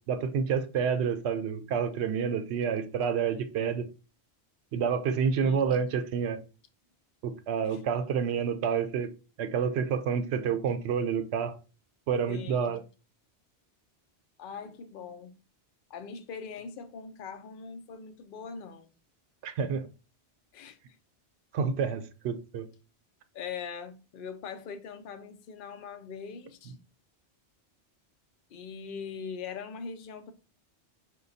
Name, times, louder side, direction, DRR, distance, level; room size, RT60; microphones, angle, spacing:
voice 1, 0.1-3.9 4.7-6.4 7.2-9.1 9.4-11.6 12.1-12.8 19.4-19.9 21.5-22.7, right 6 dB, 75° right, 0.9 m, -29 dB
voice 2, 5.4-5.8 7.7-7.8 12.3-12.8 14.4-15.3 15.9-18.9 20.5-20.8 23.3-26.7 28.5-30.3, left 6 dB, 60° left, 0.7 m, -41 dB
5.2 x 2.2 x 4.0 m
omnidirectional pair, 1.1 m